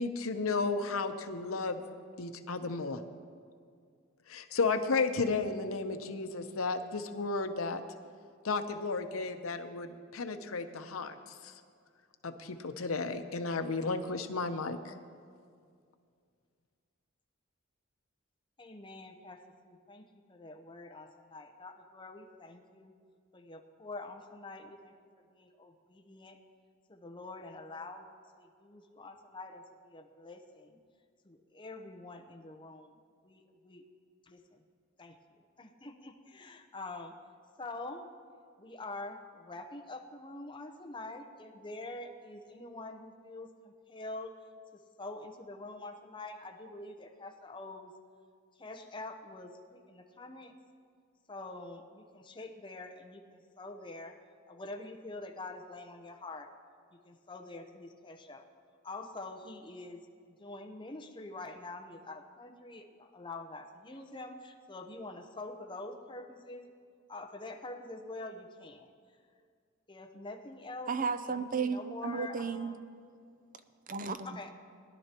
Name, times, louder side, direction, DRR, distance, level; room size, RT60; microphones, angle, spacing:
voice 1, 0.0-1.8 2.2-3.0 4.3-7.8 8.4-11.2 12.2-15.0, left 3 dB, 85° left, 8 dB, 0.8 m, -33 dB
voice 2, 18.6-20.0 20.3-22.9 23.3-24.9 25.3-26.4 26.9-30.8 31.2-33.0 33.2-33.8 34.3-34.6 35.0-35.2 35.6-37.1 37.6-38.1 38.6-44.3 45.0-47.9 48.6-50.5 51.3-54.1 54.5-56.5 57.0-58.5 58.8-60.0 60.4-66.6 67.1-68.9 69.9-70.9 71.7-72.8 74.2-74.5, left 2 dB, 25° left, 4 dB, 0.9 m, -45 dB
voice 3, 70.9-72.7 73.9-74.4, right 5 dB, 40° right, 10 dB, 0.6 m, -34 dB
20.5 x 11.5 x 3.0 m, 2.2 s
head